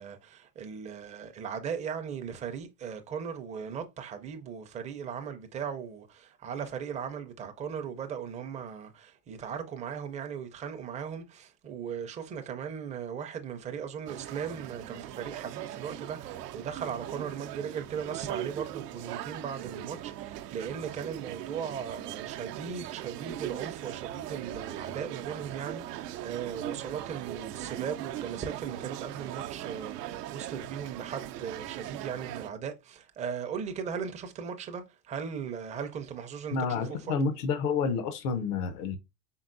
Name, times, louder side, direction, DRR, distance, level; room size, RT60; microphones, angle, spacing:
voice 1, 0.0-37.2, right 7 dB, 15° right, 0.4 m, -38 dB
sound 1, 14.1-32.5, right 12 dB, 90° right, 0.6 m, -39 dB
voice 2, 36.5-39.0, left 5 dB, 75° left, 0.8 m, -29 dB
4.5 x 3.5 x 2.5 m
supercardioid pair, 120°, 46 cm